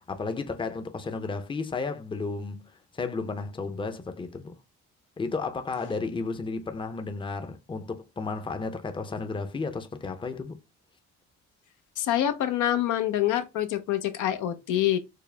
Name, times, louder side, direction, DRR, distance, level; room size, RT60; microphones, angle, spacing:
voice 1, 0.1-2.6 2.9-4.6 5.2-10.6, left 4 dB, 15° left, 0.5 m, -33 dB
voice 2, 12.0-15.0, left 12 dB, 80° left, 0.6 m, -26 dB
4.7 x 2.0 x 3.3 m
cardioid pair, 90°, 30 cm